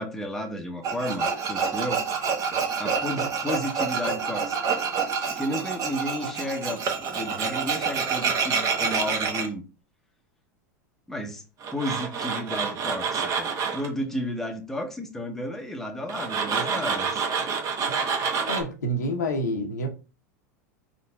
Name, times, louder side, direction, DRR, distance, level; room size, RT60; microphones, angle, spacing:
voice 1, 0.0-2.0 2.8-4.7 5.4-9.6 11.1-11.4 11.7-17.3, equal, 5° left, 0.8 m, -32 dB
Tools, 0.8-9.5 11.6-13.9 16.1-18.6, right 5 dB, 40° right, 1.0 m, -27 dB
voice 2, 18.5-19.9, equal, 90° left, 0.9 m, -28 dB
4.0 x 3.9 x 2.3 m
hypercardioid pair, 95°, 9 cm